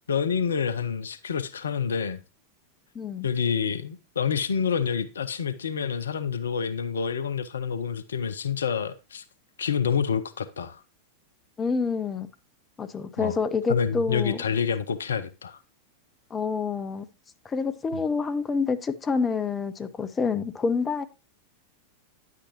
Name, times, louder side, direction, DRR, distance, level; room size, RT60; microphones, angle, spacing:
voice 1, 0.1-2.2 3.2-9.2 9.6-10.8 13.2-13.3 13.7-15.6 17.9-18.0, left 7 dB, 70° left, 0.5 m, -28 dB
voice 2, 2.9-3.3 11.6-12.3 12.8-14.4 16.3-17.1 17.4-21.0, left 5 dB, 20° left, 0.7 m, -27 dB
9.8 x 8.3 x 3.0 m
figure-of-eight pair, 90°, 0 cm